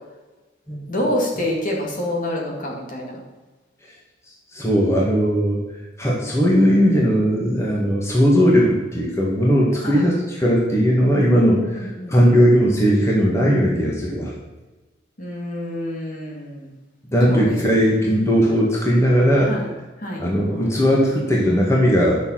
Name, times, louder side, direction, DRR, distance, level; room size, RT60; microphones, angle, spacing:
voice 1, 0.9-3.2 9.8-10.1 11.7-12.2 15.2-16.7 17.3-17.5 18.0-18.3 19.5-19.7 20.0-20.2, left 1 dB, 45° left, -1 dB, 2.5 m, -27 dB
voice 2, 4.5-5.6 6.0-14.3 17.1-19.6 20.2-22.2, equal, 15° left, -3 dB, 1.9 m, -18 dB
10.5 x 6.6 x 5.9 m, 1.2 s
head